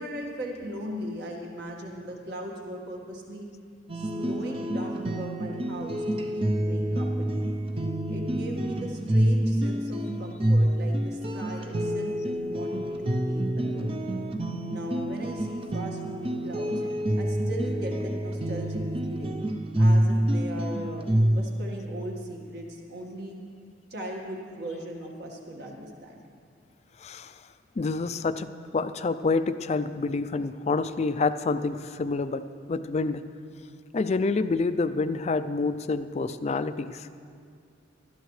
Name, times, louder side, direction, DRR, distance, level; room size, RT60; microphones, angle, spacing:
voice 1, 0.0-3.5 3.9-7.5 8.1-14.0 14.7-16.8 17.1-19.4 19.8-23.4 23.9-26.2, right 1 dB, 55° right, 0 dB, 1.7 m, -38 dB
sound 1, 3.9-21.5, right 1 dB, 30° right, 0.6 m, -27 dB
voice 2, 27.0-27.3 27.8-28.5 28.7-33.2 33.9-37.1, left 3 dB, 35° left, 12 dB, 0.4 m, -27 dB
19.5 x 13.0 x 3.2 m, 2.3 s
head